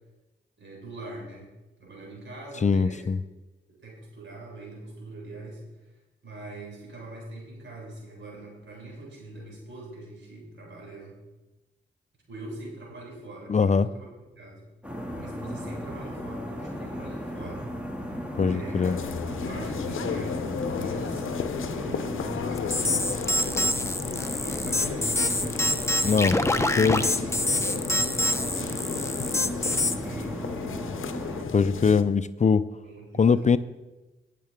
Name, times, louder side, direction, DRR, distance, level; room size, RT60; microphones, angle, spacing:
voice 1, 0.6-1.5 1.8-3.1 3.8-5.6 6.2-11.2 12.3-14.1 14.4-14.7 15.1-17.8 18.3-23.7 24.3-26.8 27.1-27.9 28.2-31.0 32.8-33.6, right 2 dB, 65° right, -1 dB, 4.2 m, -42 dB
voice 2, 2.6-3.2 13.5-13.9 18.4-19.0 26.0-26.4 26.8-27.1 31.5-32.7 33.2-33.6, left 5 dB, 35° left, 15 dB, 0.5 m, -21 dB
sound 1, 14.8-31.4, equal, 5° right, 2.3 m, -35 dB
sound 2, 18.8-32.0, left 7 dB, 75° left, 0.7 m, -34 dB
sound 3, 22.7-29.9, left 1 dB, 15° left, 0.9 m, -26 dB
19.0 x 6.7 x 3.6 m, 1.1 s
supercardioid pair, 45°, 21 cm